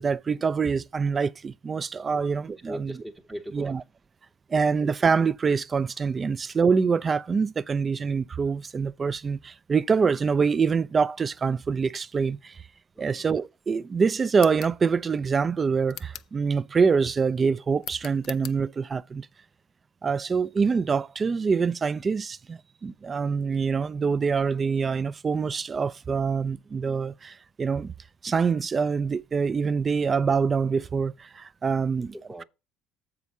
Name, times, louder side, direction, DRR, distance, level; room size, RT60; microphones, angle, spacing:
voice 1, 0.0-3.0 3.5-3.8 4.5-12.6 13.0-19.3 20.0-27.9 28.2-32.1, right 5 dB, 30° right, 0.4 m, -25 dB
voice 2, 2.6-3.8 12.9-13.3 32.3-32.4, equal, 10° right, 0.8 m, -39 dB
sound 1, 14.3-14.8 15.9-16.4 17.8-18.6, left 12 dB, 65° left, 0.5 m, -41 dB
7.2 x 4.7 x 5.4 m
supercardioid pair, 105°, 0 cm